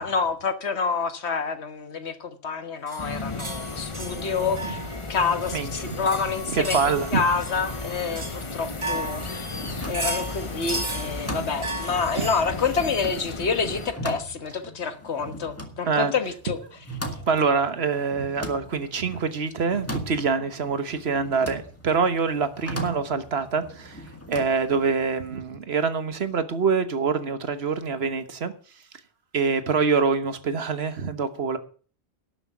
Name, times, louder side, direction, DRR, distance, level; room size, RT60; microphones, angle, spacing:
voice 1, 0.0-4.8 5.1-6.8 7.1-9.5 9.9-16.6, left 5 dB, 90° left, 1.6 m, -28 dB
sound 1, 2.9-12.4, right 2 dB, 55° right, 2.3 m, -36 dB
sound 2, 3.0-13.9, left 3 dB, 30° left, 1.0 m, -35 dB
voice 2, 5.5-5.9 6.5-7.2 11.4-11.5 12.0-12.3 15.8-16.1 17.3-28.5 29.3-31.6, right 5 dB, 70° right, 1.5 m, -25 dB
sound 3, 8.9-25.4, right 1 dB, 15° left, 1.9 m, -39 dB
12.0 x 6.8 x 8.1 m
omnidirectional pair, 1.1 m